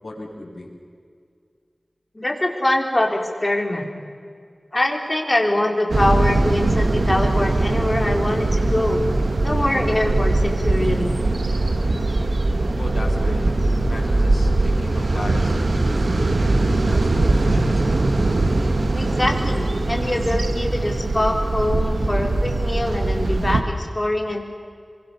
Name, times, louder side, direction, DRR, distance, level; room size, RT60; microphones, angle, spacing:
voice 1, 0.0-0.7 12.8-17.9, left 2 dB, 65° left, -1 dB, 7.1 m, -36 dB
voice 2, 2.1-3.9 4.7-9.0 9.4-11.2 18.9-24.4, left 1 dB, 30° left, 2 dB, 4.5 m, -23 dB
sound 1, 5.9-23.6, right 2 dB, 85° right, 1.8 m, -21 dB
27.5 x 24.0 x 7.1 m, 2.1 s
wide cardioid pair, 60°, 0 cm